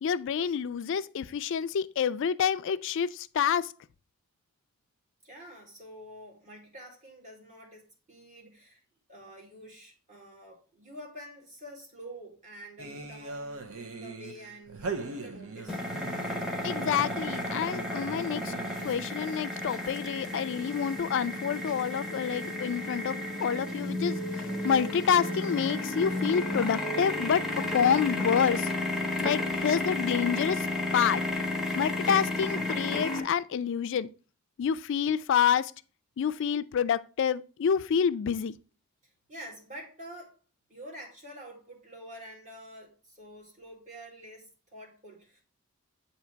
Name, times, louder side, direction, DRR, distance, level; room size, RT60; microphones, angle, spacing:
voice 1, 0.0-3.7 16.6-18.5 18.8-24.2 24.6-27.4 27.7-28.7 29.2-30.7 30.9-31.2 31.7-34.1 34.6-35.7 36.2-38.5, left 7 dB, 60° left, 0.3 m, -28 dB
voice 2, 5.2-8.8 9.1-15.8 18.8-18.9 39.0-40.3 40.7-45.4, equal, 35° right, 2.0 m, -47 dB
sound 1, 12.8-19.3, right 3 dB, 70° right, 0.7 m, -40 dB
sound 2, 15.7-33.2, left 1 dB, ahead, 0.8 m, -32 dB
7.7 x 2.8 x 4.5 m
head